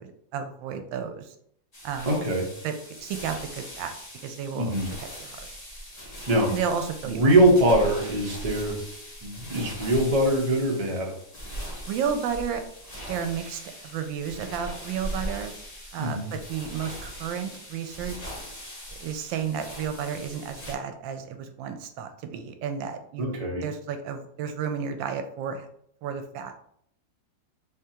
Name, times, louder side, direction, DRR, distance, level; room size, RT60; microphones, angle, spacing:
voice 1, 0.0-1.3 1.8-2.1 2.6-3.9 4.2-4.7 5.2-5.5 6.5-7.3 11.8-15.5 15.9-18.3 18.9-23.4 23.6-25.7 26.0-26.6, right 7 dB, 85° right, 7 dB, 1.3 m, -32 dB
sound 1, 1.7-20.7, equal, 30° left, 0.7 m, -40 dB
voice 2, 2.1-2.5 4.5-4.9 6.0-6.5 7.1-8.8 9.2-11.1 16.0-16.3 23.2-23.6, right 1 dB, 35° right, -1 dB, 0.5 m, -23 dB
3.6 x 3.5 x 2.8 m, 0.68 s
omnidirectional pair, 2.0 m